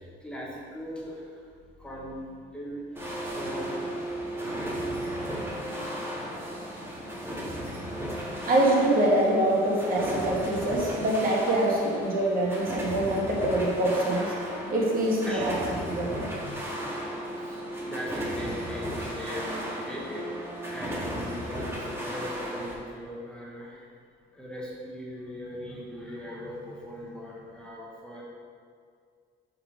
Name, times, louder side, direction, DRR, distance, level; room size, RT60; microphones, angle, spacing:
voice 1, 0.0-1.4 1.8-3.0 3.3-3.9 5.8-6.2 15.2-15.5 16.4-16.6 17.4-20.3 20.6-23.9 24.3-28.2, equal, 5° left, -5 dB, 1.4 m, -40 dB
sound 1, 3.0-22.8, equal, 10° right, 1.7 m, -35 dB
voice 2, 8.5-15.5 15.9-16.1, right 1 dB, 50° right, -3 dB, 1.8 m, -25 dB
Piano, 13.5-15.8, left 1 dB, 35° left, 1.2 m, -47 dB
7.3 x 4.1 x 6.3 m, 2.2 s
cardioid pair, 110°, 19 cm